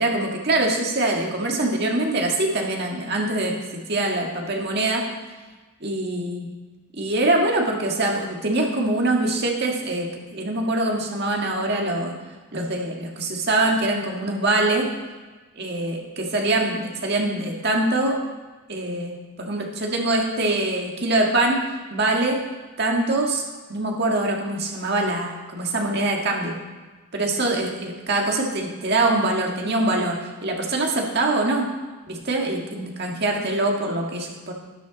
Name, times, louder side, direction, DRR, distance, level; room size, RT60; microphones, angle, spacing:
voice 1, 0.0-5.0 5.8-6.5 7.0-12.1 12.5-14.9 15.6-18.2 18.7-21.6 21.9-22.4 22.8-23.4 23.7-26.6 27.1-31.7 32.1-34.5, right 2 dB, 50° right, 0 dB, 1.8 m, -24 dB
12.0 x 9.8 x 4.1 m, 1.3 s
head